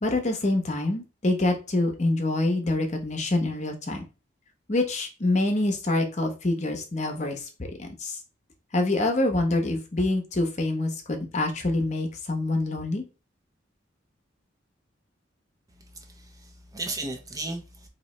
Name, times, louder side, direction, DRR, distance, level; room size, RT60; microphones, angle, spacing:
voice 1, 0.0-4.0 4.7-7.5 7.8-8.2 8.7-13.0, left 2 dB, 35° left, 0.8 m, -26 dB
voice 2, 15.9-17.9, right 2 dB, 20° right, 0.5 m, -35 dB
3.9 x 2.9 x 3.1 m
head